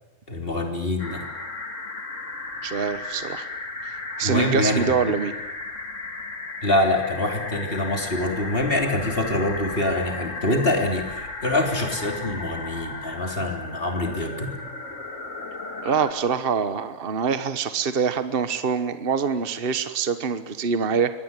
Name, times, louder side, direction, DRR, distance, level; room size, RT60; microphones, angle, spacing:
voice 1, 0.3-1.2 4.2-5.1 6.6-14.5, left 1 dB, 40° left, 3 dB, 3.7 m, -25 dB
sound 1, 1.0-16.1, left 3 dB, 60° left, 2.9 m, -35 dB
voice 2, 2.6-3.5 4.2-5.3 15.8-21.1, right 6 dB, 45° right, 11 dB, 1.4 m, -24 dB
24.0 x 18.0 x 9.8 m, 1.0 s
omnidirectional pair, 1.4 m